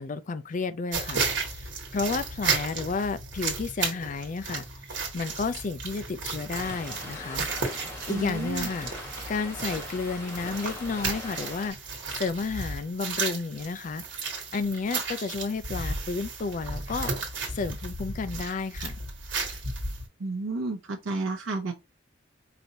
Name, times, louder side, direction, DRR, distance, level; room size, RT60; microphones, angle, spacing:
voice 1, 0.0-1.6 1.9-4.6 4.9-7.5 8.1-8.9 9.3-11.8 12.2-17.1 17.5-19.0, left 4 dB, 40° left, 0.4 m, -32 dB
sound 1, 0.9-20.1, right 4 dB, 65° right, 1.5 m, -34 dB
Stream, 6.5-11.7, left 1 dB, 15° left, 1.1 m, -41 dB
voice 2, 8.1-8.7 20.2-21.7, right 2 dB, 90° right, 0.6 m, -31 dB
4.9 x 2.6 x 2.8 m
head